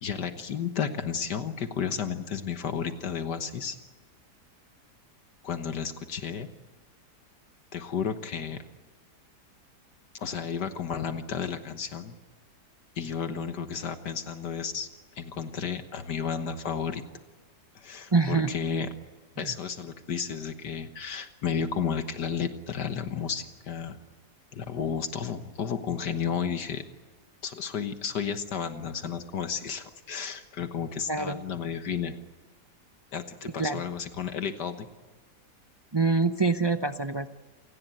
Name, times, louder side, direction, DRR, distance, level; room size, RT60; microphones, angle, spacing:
voice 1, 0.0-3.8 5.4-6.5 7.7-8.6 10.1-12.1 13.0-14.9 15.2-17.0 17.8-18.9 19.4-24.0 24.5-26.8 27.4-32.2 33.1-34.9, left 7 dB, 75° left, 8 dB, 1.9 m, -32 dB
voice 2, 18.1-18.5 19.4-19.5 31.1-31.4 33.4-33.8 35.9-37.3, right 4 dB, 40° right, 8 dB, 0.3 m, -25 dB
28.5 x 18.5 x 9.1 m, 1.4 s
omnidirectional pair, 1.8 m